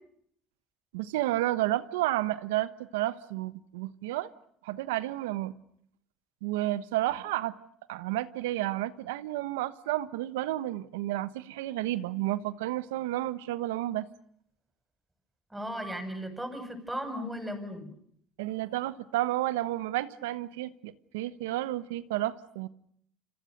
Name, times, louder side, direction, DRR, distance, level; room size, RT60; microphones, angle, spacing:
voice 1, 0.9-4.3 4.6-5.5 6.4-7.5 7.9-14.1 18.4-22.7, right 15 dB, 90° right, 15 dB, 1.1 m, -31 dB
voice 2, 15.5-17.9, equal, 10° right, 8 dB, 7.7 m, -36 dB
30.0 x 26.5 x 6.7 m, 0.68 s
supercardioid pair, 75°, 0 cm